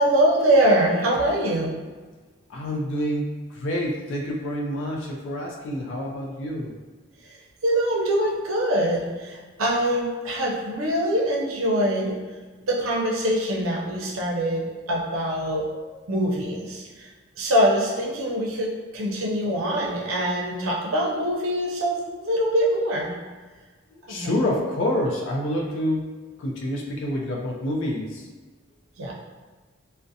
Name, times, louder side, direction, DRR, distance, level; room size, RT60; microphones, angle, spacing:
voice 1, 0.0-1.7 7.6-12.2 12.7-15.6 16.1-16.8 17.4-23.1 24.1-24.4 29.0-29.1, right 1 dB, 85° right, -3 dB, 0.6 m, -23 dB
voice 2, 2.5-6.7 15.7-16.0 16.4-16.5 24.1-26.1 26.4-28.3, left 1 dB, 70° left, -1 dB, 0.4 m, -28 dB
2.4 x 2.1 x 2.6 m, 1.4 s
head